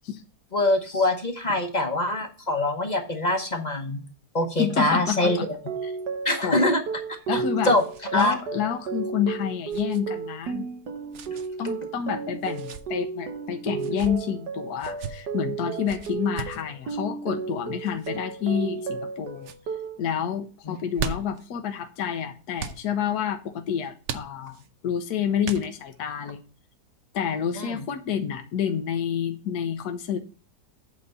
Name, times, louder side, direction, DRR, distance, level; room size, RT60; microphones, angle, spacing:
voice 1, 0.5-4.0 4.3-5.4 6.2-6.8 7.3-7.8 8.1-8.3 20.7-20.8 27.6-27.8, left 1 dB, 30° left, 4 dB, 1.0 m, -24 dB
voice 2, 4.6-5.4 5.8-5.9 6.4-6.6 7.3-7.8 8.1-10.6 11.6-19.5 20.0-26.4 27.1-30.2, left 8 dB, 75° left, 7 dB, 1.3 m, -29 dB
sound 1, 5.1-20.0, right 5 dB, 80° right, 1.7 m, -33 dB
sound 2, 7.0-8.4 8.6-8.8 9.7-10.0 11.1-11.5 12.4-12.8 13.7-14.1 14.8-15.1 15.9-16.6 17.8-18.1 18.7-19.1 19.4-19.6 20.7-21.4 22.6-22.8 24.0-24.7 25.4-26.0, right 6 dB, 60° right, 0.9 m, -37 dB
8.6 x 4.1 x 6.7 m, 0.36 s
omnidirectional pair, 1.7 m